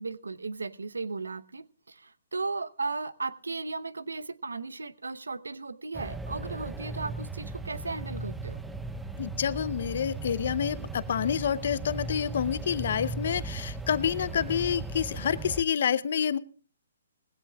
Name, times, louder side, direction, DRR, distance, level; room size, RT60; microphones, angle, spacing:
voice 1, 0.0-8.6, right 3 dB, 90° right, 16 dB, 0.8 m, -36 dB
sound 1, 5.9-15.6, right 3 dB, 5° right, 0.7 m, -37 dB
voice 2, 9.2-16.4, left 8 dB, 60° left, 15 dB, 0.7 m, -28 dB
20.0 x 16.5 x 2.3 m, 0.39 s
hypercardioid pair, 140°, 0 cm